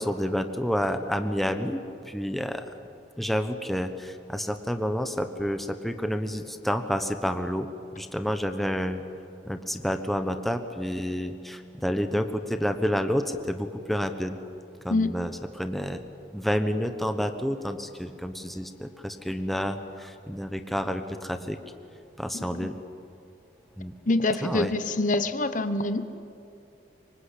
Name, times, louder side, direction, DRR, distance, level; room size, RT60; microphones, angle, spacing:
voice 1, 0.0-1.8 2.0-2.7 3.2-7.7 7.9-9.0 9.4-14.4 14.8-16.0 16.3-21.6 22.2-22.7 23.8-23.9 24.4-24.7, equal, ahead, 7 dB, 1.1 m, -29 dB
voice 2, 24.1-26.0, left 2 dB, 45° left, 11 dB, 1.0 m, -25 dB
25.5 x 24.0 x 8.5 m, 2.5 s
head